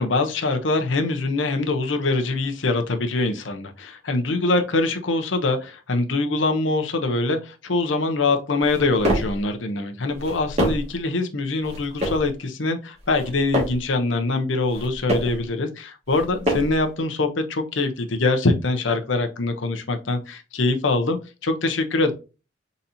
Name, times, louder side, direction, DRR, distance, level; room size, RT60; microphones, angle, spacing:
voice 1, 0.0-22.1, left 3 dB, 80° left, 6 dB, 0.8 m, -23 dB
sound 1, 8.6-9.4 10.1-11.0 11.6-12.3 13.0-13.9 14.6-15.4 16.1-16.9, equal, 35° right, 1.8 m, -27 dB
4.2 x 4.0 x 2.7 m, 0.31 s
head